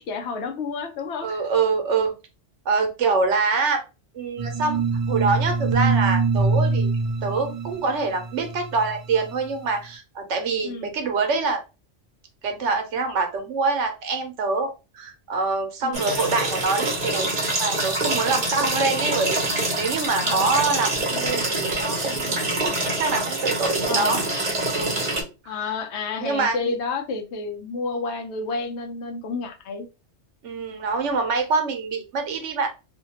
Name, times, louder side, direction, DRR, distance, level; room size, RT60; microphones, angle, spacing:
voice 1, 0.0-1.5 10.6-10.9 15.8-16.1 18.6-18.8 20.2-20.5 23.9-24.2 25.5-29.9, left 4 dB, 75° left, 5 dB, 0.8 m, -30 dB
voice 2, 1.2-2.1 2.7-3.8 4.1-4.8 5.1-6.9 7.2-11.6 12.4-17.3 17.6-22.3 22.7-24.2 24.7-25.0 26.2-26.7 30.4-32.7, right 4 dB, 85° right, 4 dB, 1.0 m, -25 dB
sound 1, 4.4-9.5, right 4 dB, 65° right, 0.3 m, -24 dB
sound 2, 15.9-25.2, right 2 dB, 40° right, 0.9 m, -25 dB
2.7 x 2.1 x 2.8 m, 0.29 s
omnidirectional pair, 1.2 m